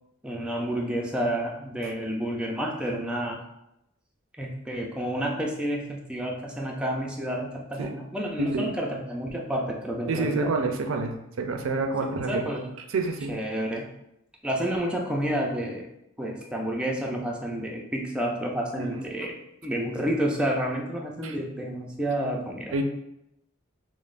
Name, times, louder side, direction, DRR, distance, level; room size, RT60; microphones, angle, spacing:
voice 1, 0.2-3.4 4.4-10.5 12.3-12.7 13.3-13.9 14.4-15.9 16.2-19.3 19.6-22.8, right 1 dB, 5° right, -1 dB, 0.4 m, -30 dB
voice 2, 8.4-8.7 10.1-12.5 12.9-13.3 18.8-19.0 21.2-21.4 22.7-22.8, right 3 dB, 70° right, 4 dB, 0.4 m, -28 dB
5.1 x 2.0 x 2.4 m, 0.83 s
head